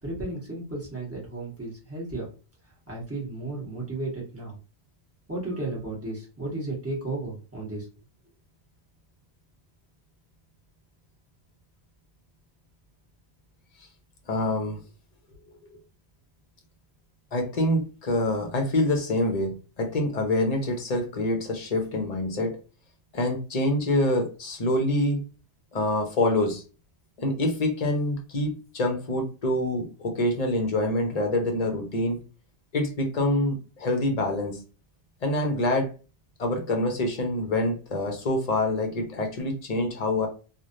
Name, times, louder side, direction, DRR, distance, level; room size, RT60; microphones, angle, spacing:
voice 1, 0.0-2.3 2.9-4.6 5.3-7.9, right 2 dB, 15° right, -4 dB, 1.4 m, -34 dB
voice 2, 14.3-14.8 17.3-22.6 23.1-25.2 25.7-26.6 27.2-32.2 32.7-34.6 35.2-35.9 36.4-40.3, left 1 dB, 40° left, 3 dB, 0.8 m, -26 dB
3.2 x 2.5 x 2.6 m, 0.34 s
omnidirectional pair, 1.1 m